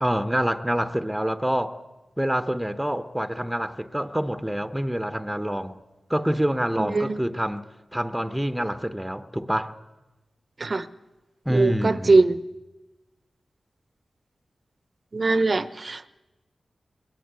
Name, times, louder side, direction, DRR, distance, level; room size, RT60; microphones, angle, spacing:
voice 1, 0.0-1.8 2.2-5.8 6.1-7.6 7.9-9.7 11.4-12.3, equal, 5° right, 1.2 m, -26 dB
voice 2, 6.8-7.2 10.6-10.8 11.5-12.4 15.1-16.1, right 3 dB, 50° right, 1.0 m, -21 dB
22.0 x 18.0 x 8.3 m
cardioid pair, 45°, 0 cm